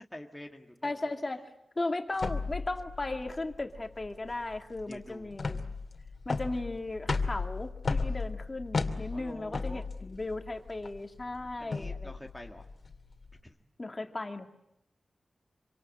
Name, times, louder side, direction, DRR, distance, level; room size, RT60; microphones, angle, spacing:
voice 1, 0.1-0.9 4.9-5.3 9.1-9.9 11.6-12.7 13.4-13.6, left 1 dB, 5° left, 1 dB, 1.9 m, -47 dB
voice 2, 0.8-1.5 1.8-5.7 6.3-12.1 13.8-14.5, left 2 dB, 25° left, 5 dB, 2.4 m, -36 dB
sound 1, 2.2-13.4, left 4 dB, 45° left, 2.6 m, -35 dB
26.5 x 26.0 x 8.6 m, 0.85 s
wide cardioid pair, 125°, 0 cm